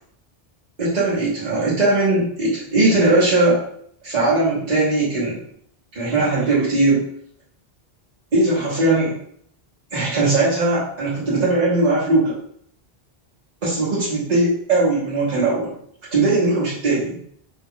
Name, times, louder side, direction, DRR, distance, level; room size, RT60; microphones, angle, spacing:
voice 1, 0.8-3.6 4.0-5.4 5.9-7.1 8.3-9.2 9.9-12.4 13.6-15.7 16.1-17.2, right 2 dB, 45° right, -8 dB, 1.2 m, -19 dB
4.3 x 2.3 x 3.6 m, 0.66 s
omnidirectional pair, 1.0 m